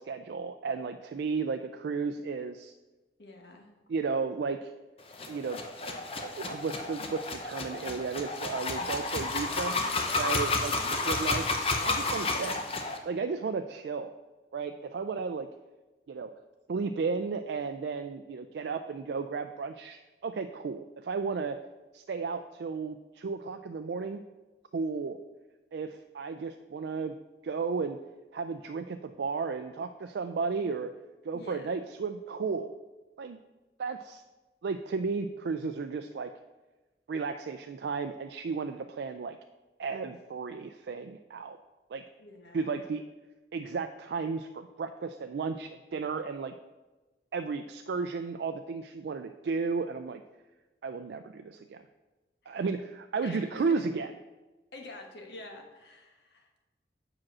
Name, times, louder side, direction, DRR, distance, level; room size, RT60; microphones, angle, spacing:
voice 1, 0.0-2.7 3.9-4.7 5.3-9.8 10.1-10.7 11.0-11.5 11.8-12.6 13.1-14.1 14.5-15.5 16.1-16.3 16.7-21.6 21.9-24.2 24.7-25.2 25.7-27.1 27.4-28.0 28.3-30.9 31.2-32.7 33.2-33.4 33.8-34.2 34.6-36.3 37.1-39.4 39.8-41.6 41.9-42.0 42.5-43.0 43.5-46.5 47.3-50.2 50.8-51.8 52.5-54.1, right 4 dB, 75° right, 8 dB, 0.4 m, -34 dB
voice 2, 3.2-3.7 10.7-10.9 12.3-12.6 31.3-31.6 42.2-42.8 52.4-52.7 53.2-53.9 54.7-56.6, left 2 dB, 75° left, 2 dB, 1.3 m, -47 dB
sound 1, 5.1-13.0, left 3 dB, 35° left, 0.7 m, -31 dB
7.4 x 5.0 x 6.0 m, 1.2 s
head